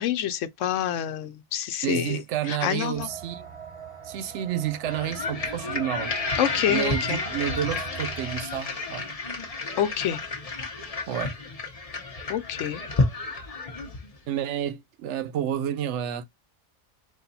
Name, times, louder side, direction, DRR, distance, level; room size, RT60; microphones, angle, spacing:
voice 1, 0.0-3.1 6.4-7.2 9.8-10.2 12.3-12.8, left 10 dB, 85° left, 1.0 m, -27 dB
voice 2, 1.8-3.5 4.1-6.1 6.7-9.1 11.1-11.3 14.3-16.3, right 10 dB, 75° right, 0.9 m, -30 dB
sound 1, 2.9-8.4, right 6 dB, 35° right, 0.5 m, -41 dB
sound 2, 4.9-14.2, left 3 dB, 30° left, 1.0 m, -31 dB
4.2 x 2.6 x 4.0 m
omnidirectional pair, 1.2 m